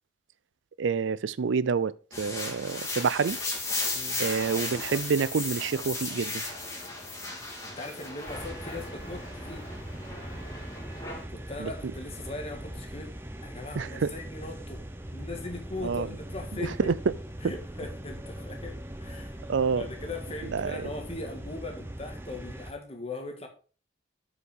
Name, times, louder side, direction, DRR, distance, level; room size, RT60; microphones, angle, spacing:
voice 1, 0.8-3.4 4.2-6.4 11.6-11.7 13.8-14.1 15.8-16.1 16.6-16.9 19.5-19.9 20.5-20.9, right 5 dB, 70° right, 0.4 m, -28 dB
sound 1, 2.1-11.2, left 2 dB, 15° left, 2.1 m, -36 dB
sound 2, 4.0-21.7, right 1 dB, 35° right, 2.3 m, -58 dB
voice 2, 7.6-9.7 11.3-13.2 13.4-14.8 15.1-17.0 17.4-19.4 19.7-23.5, left 2 dB, 30° left, 1.7 m, -39 dB
sound 3, 8.3-22.7, right 1 dB, 10° right, 0.7 m, -41 dB
8.1 x 5.2 x 5.3 m
head